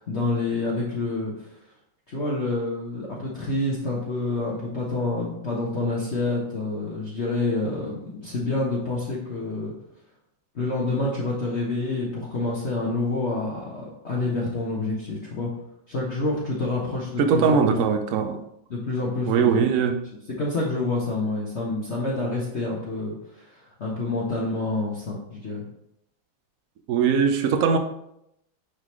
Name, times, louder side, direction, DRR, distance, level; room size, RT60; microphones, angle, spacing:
voice 1, 0.1-1.5 2.1-9.7 10.5-15.5 15.9-17.8 18.7-19.6 20.4-25.6, left 2 dB, 40° left, -5 dB, 1.1 m, -28 dB
voice 2, 17.2-18.4 19.3-20.0 26.9-27.8, right 6 dB, 80° right, 6 dB, 0.7 m, -21 dB
9.8 x 3.8 x 3.1 m, 0.78 s
omnidirectional pair, 2.2 m